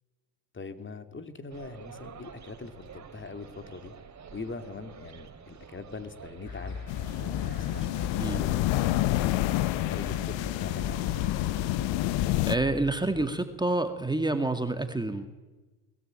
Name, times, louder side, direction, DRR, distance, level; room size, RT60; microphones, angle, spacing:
voice 1, 0.5-3.9 4.3-11.3, left 4 dB, 25° left, 9 dB, 2.6 m, -42 dB
sound 1, 1.5-12.8, right 7 dB, 35° right, 3.5 m, -48 dB
sound 2, 6.4-13.3, left 3 dB, 50° left, 5.7 m, -42 dB
sound 3, 6.9-12.6, left 16 dB, 65° left, 1.0 m, -28 dB
voice 2, 12.5-15.3, right 2 dB, 10° right, 7 dB, 2.0 m, -28 dB
21.5 x 21.0 x 9.0 m, 1.2 s
supercardioid pair, 90°, 47 cm